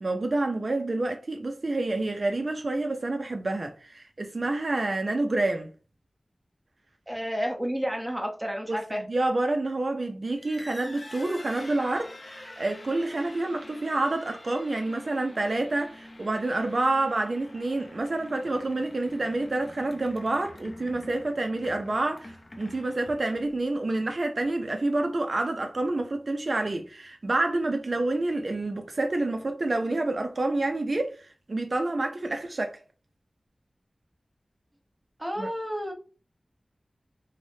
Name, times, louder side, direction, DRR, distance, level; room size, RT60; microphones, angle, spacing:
voice 1, 0.0-5.7 8.7-32.8 35.4-35.5, right 2 dB, 55° right, 0.3 m, -28 dB
voice 2, 7.1-9.0 35.2-35.9, equal, 10° right, 0.7 m, -31 dB
sound 1, 10.3-23.7, left 1 dB, 50° left, 0.5 m, -47 dB
3.1 x 2.0 x 2.6 m
wide cardioid pair, 70°, 0 cm